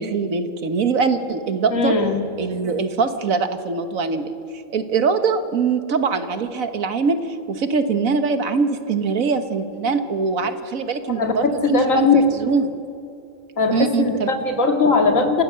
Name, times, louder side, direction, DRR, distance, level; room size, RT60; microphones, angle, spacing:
voice 1, 0.0-1.9 2.4-12.7 13.7-14.3, right 5 dB, 85° right, 9 dB, 1.8 m, -22 dB
voice 2, 1.7-2.2 11.2-12.2 13.6-15.4, left 4 dB, 75° left, 4 dB, 2.5 m, -19 dB
27.5 x 16.5 x 7.7 m, 2.5 s
omnidirectional pair, 1.4 m